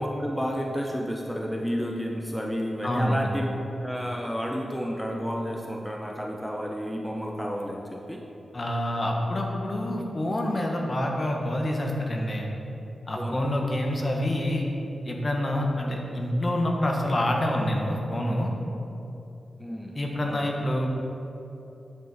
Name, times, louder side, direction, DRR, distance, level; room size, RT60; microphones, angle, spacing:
voice 1, 0.0-3.5 3.8-8.2 13.2-13.5 19.6-20.0 20.2-20.5, equal, ahead, 0 dB, 0.8 m, -31 dB
voice 2, 2.8-3.3 8.5-12.5 13.1-14.6 15.0-18.5 19.9-20.9, left 1 dB, 40° left, 0 dB, 1.3 m, -27 dB
10.5 x 5.2 x 4.2 m, 2.9 s
cardioid pair, 55°, 0 cm